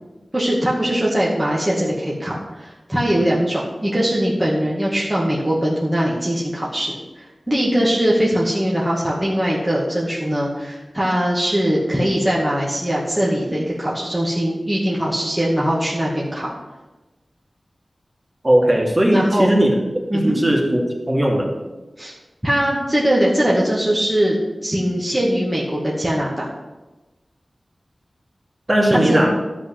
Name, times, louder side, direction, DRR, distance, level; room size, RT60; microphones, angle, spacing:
voice 1, 0.3-16.5 19.1-19.5 20.1-20.4 22.0-22.1 22.4-24.4 24.6-26.5 28.9-29.3, equal, 10° right, -5 dB, 2.2 m, -21 dB
voice 2, 18.4-19.8 20.1-21.5 28.7-29.3, right 1 dB, 25° right, -2 dB, 2.7 m, -17 dB
12.0 x 5.1 x 7.6 m, 1.1 s
wide cardioid pair, 70°, 0 cm